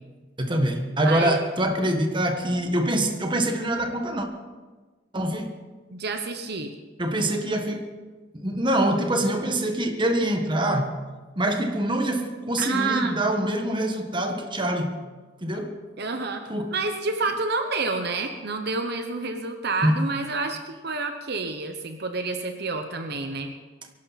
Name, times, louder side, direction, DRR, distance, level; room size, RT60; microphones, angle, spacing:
voice 1, 0.4-4.3 5.1-5.5 7.0-7.9 8.3-11.0 11.4-15.0 15.4-15.8 16.5-16.8 19.8-20.1, right 1 dB, 25° right, 4 dB, 1.5 m, -24 dB
voice 2, 1.0-1.4 5.9-6.7 12.6-13.2 16.0-23.5, right 3 dB, 55° right, 6 dB, 1.0 m, -29 dB
23.5 x 11.5 x 4.2 m, 1.3 s
head